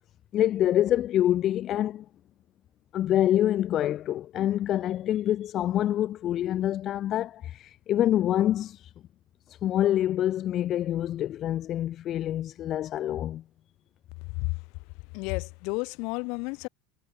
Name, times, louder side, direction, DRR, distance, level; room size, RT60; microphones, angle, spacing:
voice 1, 0.3-2.0 2.9-8.9 9.5-13.4, left 12 dB, 35° left, 0.7 m, -26 dB
voice 2, 15.1-16.7, left 30 dB, 55° left, 3.2 m, -31 dB
supercardioid pair, 150°, 0 cm